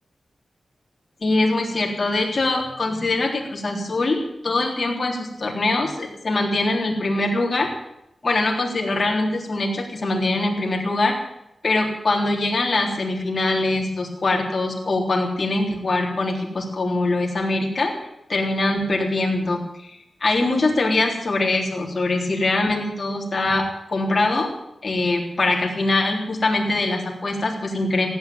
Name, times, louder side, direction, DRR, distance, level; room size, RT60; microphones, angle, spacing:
voice 1, 1.2-7.7 8.2-11.2 11.6-17.9 18.3-24.5 24.8-28.1, left 2 dB, 40° left, 0 dB, 3.8 m, -23 dB
16.0 x 9.5 x 9.3 m, 0.82 s
wide cardioid pair, 130°, 0 cm